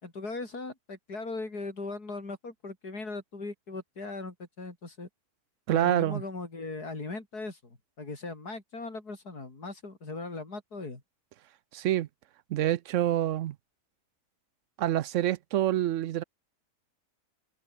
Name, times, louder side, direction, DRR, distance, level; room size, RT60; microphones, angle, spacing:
voice 1, 0.0-5.1 5.7-11.0, left 3 dB, 70° left, 4.9 m, -39 dB
voice 2, 5.7-6.2 11.7-12.1 12.5-13.5 14.8-16.2, right 13 dB, 65° right, 0.8 m, -27 dB
open air
omnidirectional pair, 1.7 m